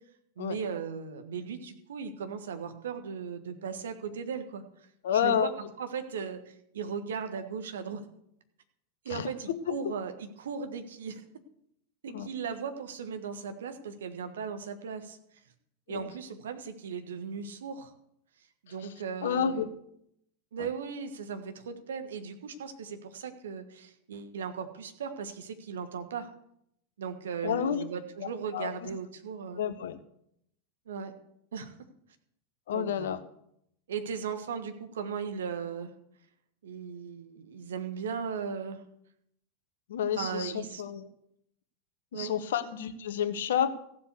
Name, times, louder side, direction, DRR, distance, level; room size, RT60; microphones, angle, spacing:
voice 1, 0.4-4.6 5.1-8.0 9.0-11.2 12.0-15.2 15.9-17.9 18.6-19.6 20.5-26.3 27.0-29.6 30.9-31.1 31.5-31.8 32.7-33.1 33.9-35.9 36.6-38.8 40.2-40.8 42.1-42.3, right 6 dB, 65° right, 7 dB, 1.5 m, -37 dB
voice 2, 5.0-5.5 9.1-9.9 12.1-12.3 15.9-16.1 19.2-19.7 20.6-20.7 27.4-27.8 28.5-28.9 29.6-30.0 32.7-33.2 39.9-40.5 40.8-41.1 42.1-43.7, left 8 dB, 60° left, 12 dB, 1.0 m, -30 dB
15.0 x 7.6 x 6.7 m, 0.75 s
figure-of-eight pair, 90°, 0 cm